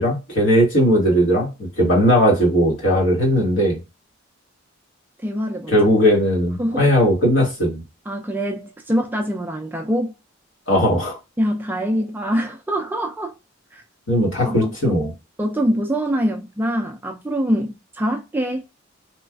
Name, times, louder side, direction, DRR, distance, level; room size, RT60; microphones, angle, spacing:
voice 1, 0.0-3.8 5.7-7.8 10.7-11.2 14.1-15.1, equal, 65° left, 1.4 m, -18 dB
voice 2, 5.2-5.8 6.6-7.2 8.1-10.1 11.4-13.3 13.7-13.8 14.4-14.9 15.4-18.6, equal, 10° right, 0.3 m, -24 dB
3.1 x 2.4 x 2.3 m
head